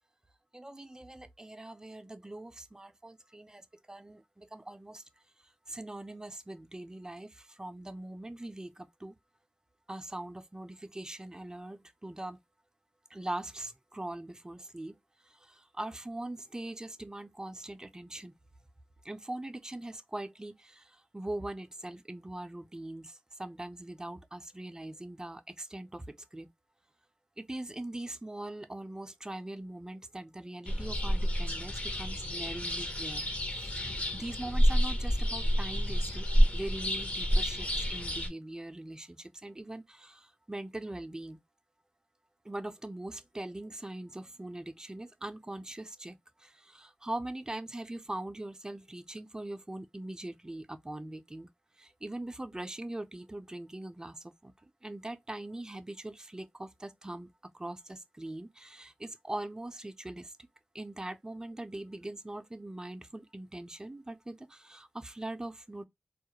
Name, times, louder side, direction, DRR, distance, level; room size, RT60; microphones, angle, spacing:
voice 1, 0.5-5.0 5.7-9.1 9.9-12.4 13.1-15.0 15.2-18.4 19.0-26.5 27.4-41.4 42.4-51.5 51.8-54.5 54.8-57.3 57.5-60.3 60.7-65.8, right 1 dB, 20° right, 0.4 m, -42 dB
sound 1, 30.7-38.3, equal, 40° left, 0.7 m, -29 dB
2.3 x 2.0 x 2.8 m
cardioid pair, 55°, 4 cm